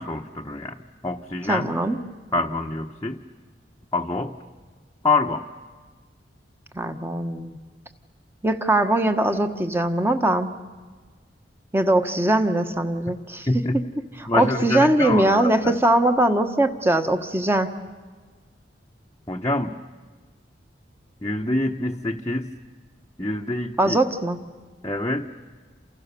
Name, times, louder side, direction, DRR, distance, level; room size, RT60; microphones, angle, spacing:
voice 1, 0.0-1.7 2.3-3.2 3.9-4.4 5.0-5.4 13.5-13.8 14.3-15.7 19.3-19.8 21.2-22.5 23.2-24.0 24.8-25.3, left 2 dB, 20° left, 0 dB, 1.0 m, -26 dB
voice 2, 1.5-2.0 6.7-7.6 8.4-10.5 11.7-13.5 13.7-13.8 14.2-17.7 23.8-24.4, right 1 dB, 15° right, 8 dB, 1.4 m, -21 dB
29.0 x 28.5 x 6.9 m, 1.4 s
head